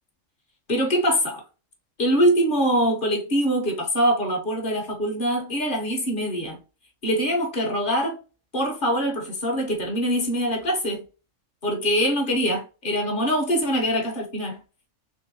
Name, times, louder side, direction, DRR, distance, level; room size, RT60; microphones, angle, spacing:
voice 1, 0.7-1.4 2.0-6.6 7.0-8.1 8.5-11.0 11.6-14.6, equal, 45° left, 1.0 m, -23 dB
3.8 x 3.0 x 2.8 m
omnidirectional pair, 1.3 m